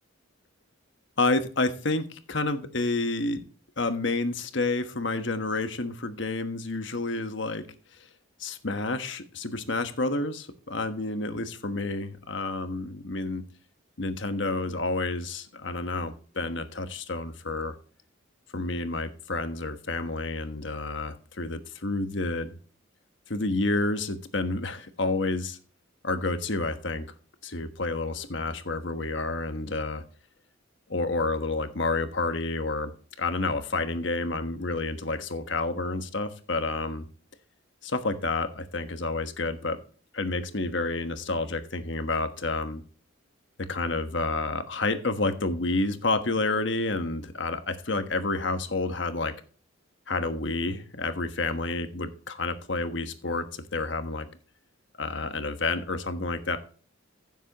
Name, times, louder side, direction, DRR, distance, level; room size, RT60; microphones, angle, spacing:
voice 1, 1.2-3.4 3.8-7.6 8.4-13.4 14.0-17.7 18.5-22.5 23.3-25.6 26.0-27.1 27.4-30.0 30.9-37.1 37.8-39.8 40.1-42.8 43.7-49.3 50.1-54.3 55.0-56.6, left 2 dB, 60° left, 8 dB, 1.3 m, -29 dB
15.5 x 7.3 x 3.0 m, 0.40 s
head